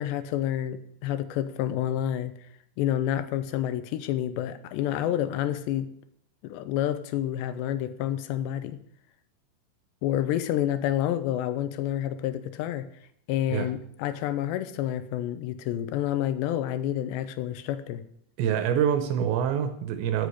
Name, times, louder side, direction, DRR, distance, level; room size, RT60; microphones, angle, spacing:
voice 1, 0.0-2.3 2.8-5.9 6.4-8.8 10.0-12.9 13.3-18.0, left 11 dB, 75° left, 12 dB, 2.7 m, -29 dB
voice 2, 18.4-20.3, right 8 dB, 75° right, 9 dB, 2.9 m, -26 dB
11.5 x 8.1 x 8.4 m, 0.68 s
omnidirectional pair, 5.7 m